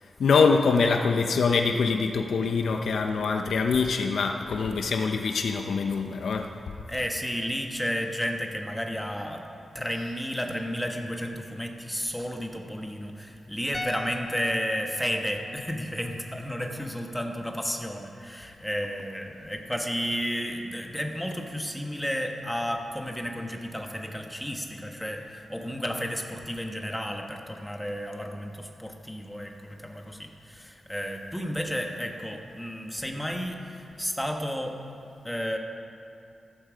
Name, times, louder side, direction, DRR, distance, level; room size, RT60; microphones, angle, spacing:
voice 1, 0.0-6.7, left 4 dB, 75° left, 5 dB, 0.8 m, -24 dB
voice 2, 6.9-9.4 9.7-34.7 35.2-35.6, equal, 5° left, 2 dB, 1.3 m, -32 dB
sound 1, 13.7-17.0 17.2-17.4, left 2 dB, 20° left, 0.7 m, -41 dB
14.5 x 14.5 x 5.1 m, 2.6 s
wide cardioid pair, 160°, 0 cm